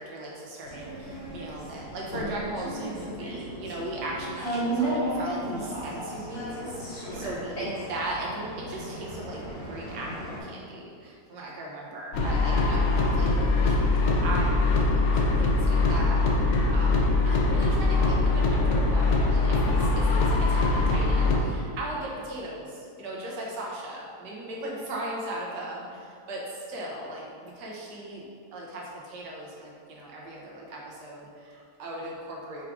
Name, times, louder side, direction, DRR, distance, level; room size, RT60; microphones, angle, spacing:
voice 1, 0.0-28.2 28.5-32.6, right 1 dB, 85° right, -4 dB, 1.5 m, -38 dB
sound 1, 0.6-10.4, right 1 dB, 40° left, 1.2 m, -34 dB
sound 2, 12.1-21.4, left 3 dB, 70° left, 0.7 m, -22 dB
4.8 x 2.4 x 4.5 m, 2.3 s
omnidirectional pair, 1.8 m